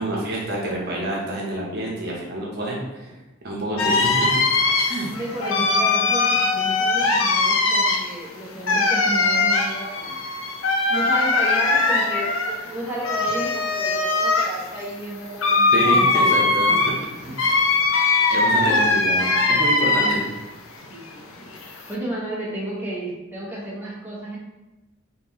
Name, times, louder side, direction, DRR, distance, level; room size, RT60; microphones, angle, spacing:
voice 1, 0.0-3.1 3.4-4.4 4.9-5.1 15.7-16.9 17.2-17.6 18.3-20.3, right 1 dB, 55° right, -4 dB, 0.9 m, -28 dB
sound 1, 3.8-20.4 20.8-21.9, left 3 dB, 80° left, 0.5 m, -21 dB
voice 2, 5.1-10.1 10.9-16.2 17.3-17.5 18.7-18.9 19.6-20.1 20.9-24.4, right 1 dB, 10° right, -7 dB, 1.0 m, -32 dB
4.3 x 3.1 x 3.0 m, 1.1 s
head